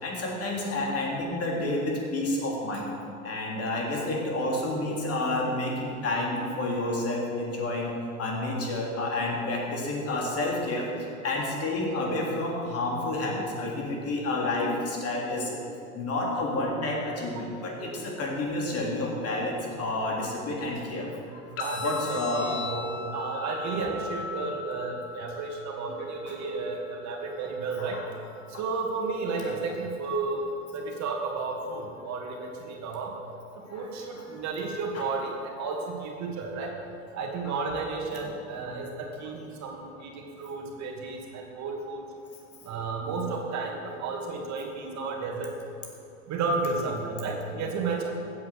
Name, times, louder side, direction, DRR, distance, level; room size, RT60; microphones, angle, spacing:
voice 1, 0.0-2.8 3.3-7.9 8.2-10.9 11.2-15.4 15.9-21.1 21.8-22.5 23.7-23.9 26.3-26.4 27.8-28.0 29.4-29.5 34.6-34.7 34.9-35.1 37.5-37.6 38.1-38.3 47.5-47.6, left 2 dB, 35° left, -2 dB, 3.4 m, -30 dB
sound 1, 21.6-29.6, left 4 dB, 60° left, 2.1 m, -40 dB
voice 2, 21.6-28.0 28.6-30.4 30.7-33.1 33.7-36.7 37.1-40.1 40.4-42.0 42.7-45.5 46.3-48.2, right 4 dB, 45° right, 1 dB, 2.4 m, -32 dB
15.0 x 8.5 x 6.5 m, 2.6 s
hypercardioid pair, 80°, 41 cm